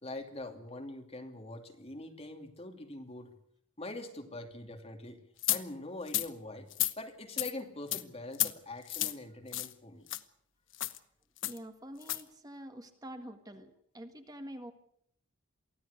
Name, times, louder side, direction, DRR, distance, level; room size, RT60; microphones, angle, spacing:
voice 1, 0.0-3.3 3.8-5.2 5.5-6.7 7.0-10.1, left 2 dB, 30° left, 4 dB, 2.6 m, -43 dB
sound 1, 5.4-5.6 6.1-6.3 6.7-6.9 7.4-7.5 7.9-8.0 8.3-8.5 8.9-9.1 9.5-9.7 10.1-10.2 10.7-11.0 11.4-11.6 12.0-12.2, left 14 dB, 65° left, 1.1 m, -31 dB
voice 2, 11.4-14.7, equal, 20° right, 6 dB, 1.6 m, -46 dB
24.0 x 15.5 x 8.3 m, 0.69 s
head